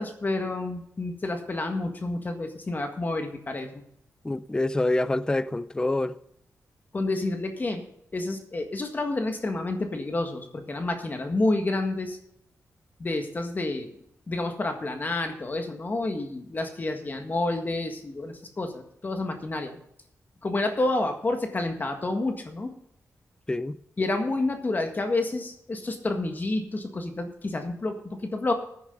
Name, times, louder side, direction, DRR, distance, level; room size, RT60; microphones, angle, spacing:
voice 1, 0.0-3.7 6.9-7.8 8.1-12.2 13.0-13.9 14.3-19.8 20.4-22.7 24.0-28.5, left 2 dB, 35° left, 1.7 m, -29 dB
voice 2, 4.2-6.2 23.5-23.8, left 2 dB, 15° left, 0.5 m, -26 dB
15.5 x 9.5 x 3.8 m
wide cardioid pair, 110°, 6 cm